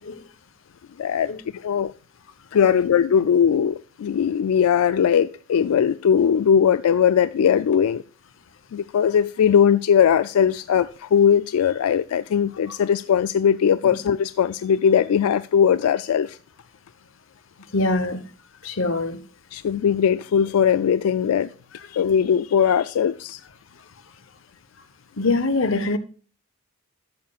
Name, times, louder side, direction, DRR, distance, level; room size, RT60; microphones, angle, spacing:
voice 1, 1.0-1.3 1.6-1.9 2.5-8.0 8.7-16.4 19.5-21.5 21.9-23.4, left 8 dB, 85° left, 0.3 m, -19 dB
voice 2, 17.7-18.3 18.6-19.2 25.2-26.0, left 2 dB, 60° left, 0.9 m, -23 dB
13.0 x 7.4 x 2.3 m
head